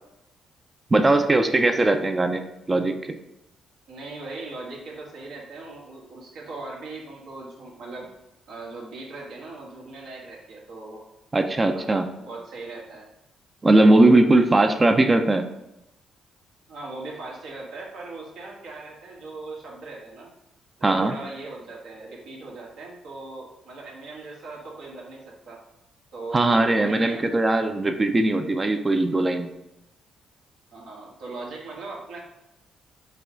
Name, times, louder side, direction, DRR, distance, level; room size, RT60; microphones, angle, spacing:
voice 1, 0.9-2.4 2.7-3.2 11.3-12.1 13.6-15.5 20.8-21.1 26.3-29.5, right 2 dB, 25° right, 6 dB, 0.4 m, -19 dB
voice 2, 3.9-8.1 8.5-11.0 11.7-13.0 16.7-20.3 20.8-25.6 26.1-27.2 30.7-32.2, right 3 dB, 80° right, -3 dB, 1.5 m, -39 dB
5.5 x 2.3 x 3.8 m, 0.90 s
cardioid pair, 90°, 0 cm